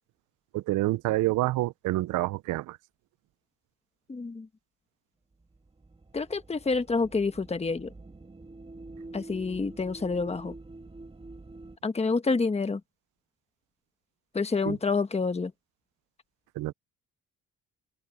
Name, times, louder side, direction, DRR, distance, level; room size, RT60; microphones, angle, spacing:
voice 1, 0.5-2.8 14.6-14.8 16.6-16.7, right 18 dB, 85° right, 0.5 m, -27 dB
voice 2, 4.1-4.5 6.1-7.9 9.1-10.5 11.8-12.8 14.3-15.5, left 4 dB, 20° left, 1.3 m, -28 dB
sound 1, 5.3-11.8, right 2 dB, 20° right, 1.8 m, -46 dB
open air
cardioid pair, 90°, 30 cm